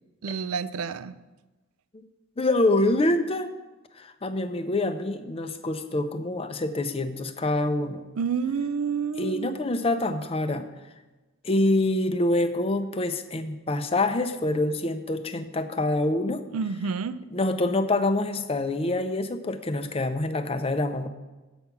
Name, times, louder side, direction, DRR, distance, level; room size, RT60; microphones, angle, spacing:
voice 1, 0.2-1.1 8.2-9.6 16.5-17.2, right 6 dB, 85° right, 15 dB, 0.4 m, -29 dB
voice 2, 2.4-3.5 4.0-8.0 9.2-10.7 11.4-16.4 17.3-21.1, left 2 dB, 25° left, 9 dB, 0.5 m, -26 dB
8.0 x 5.9 x 7.0 m, 1.2 s
head